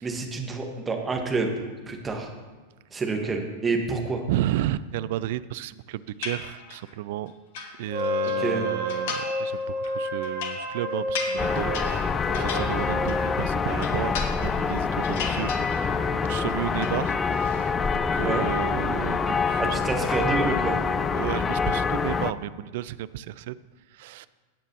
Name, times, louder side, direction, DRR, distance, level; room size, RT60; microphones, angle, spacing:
voice 1, 0.0-1.5 1.9-2.3 2.9-4.2 8.4-8.7 18.2-18.5 19.6-20.8, right 4 dB, 15° right, 2 dB, 1.5 m, -28 dB
voice 2, 4.3-7.3 7.8-15.5 16.0-19.8 21.1-23.6 23.9-24.3, right 13 dB, 50° right, 16 dB, 0.3 m, -32 dB
sound 1, 6.2-6.9 7.3-8.4 8.9-9.5 9.8-13.4 13.7-14.7 15.0-16.1 16.4-17.0, left 4 dB, 50° left, 1.2 m, -36 dB
Wind instrument woodwind instrument, 7.9-13.5, left 1 dB, 75° right, 2.5 m, -30 dB
sound 2, 11.4-22.3, left 5 dB, 20° left, 0.4 m, -26 dB
17.5 x 7.8 x 3.0 m, 1.4 s
figure-of-eight pair, 90°, 0 cm